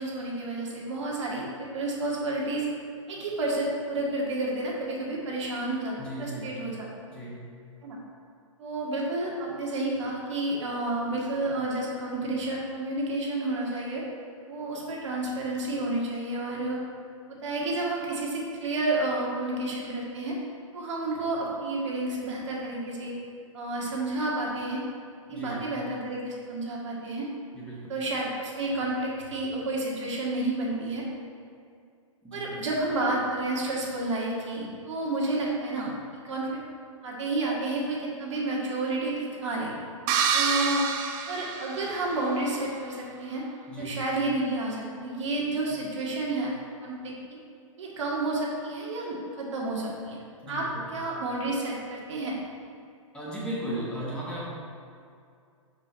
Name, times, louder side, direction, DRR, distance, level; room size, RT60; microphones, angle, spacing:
voice 1, 0.0-2.7 3.1-5.9 6.2-6.9 7.8-8.0 8.6-14.0 14.5-16.8 17.3-20.4 20.7-23.1 23.5-24.8 25.3-27.3 27.9-31.0 32.3-35.9 36.2-36.6 37.0-39.7 40.3-40.8 41.3-43.4 43.8-47.1 47.8-50.2 50.5-50.7 50.9-52.3, right 2 dB, 60° right, -4 dB, 1.7 m, -30 dB
voice 2, 6.0-6.5 7.1-7.5 25.3-25.6 27.5-27.9 32.2-32.5 43.7-44.0 50.4-50.9 53.1-54.5, right 1 dB, 5° left, -6 dB, 1.2 m, -36 dB
sound 1, 40.1-42.3, right 6 dB, 35° right, 0.5 m, -27 dB
6.0 x 5.1 x 4.4 m, 2.4 s
figure-of-eight pair, 115°, 17 cm